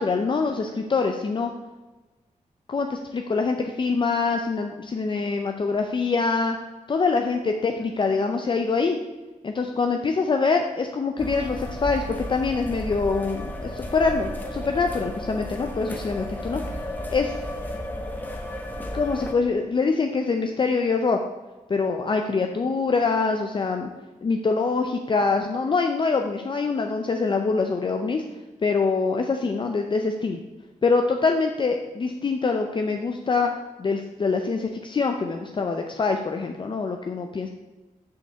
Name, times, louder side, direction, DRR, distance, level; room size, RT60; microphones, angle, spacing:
voice 1, 0.0-1.5 2.7-6.6 6.9-9.0 9.4-12.0 12.3-16.6 17.1-17.4 18.9-21.2 21.7-23.9 24.2-28.2 28.6-30.4 30.8-33.5 33.8-37.5, left 4 dB, 35° left, 4 dB, 0.6 m, -24 dB
sound 1, 11.2-19.3, left 1 dB, 15° left, 1.1 m, -33 dB
6.5 x 5.3 x 6.7 m, 1.2 s
wide cardioid pair, 145°, 14 cm